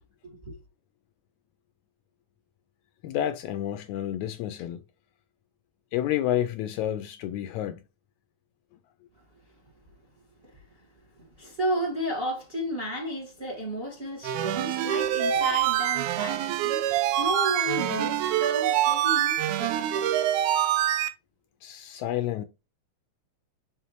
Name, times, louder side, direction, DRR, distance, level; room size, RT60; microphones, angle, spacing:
voice 1, 3.0-4.8 5.9-7.8 21.6-22.5, left 11 dB, 80° left, 1.8 m, -30 dB
voice 2, 11.4-20.4, equal, 25° right, 1.2 m, -33 dB
sound 1, 14.2-21.1, right 11 dB, 80° right, 2.1 m, -25 dB
5.6 x 5.5 x 3.0 m
omnidirectional pair, 3.7 m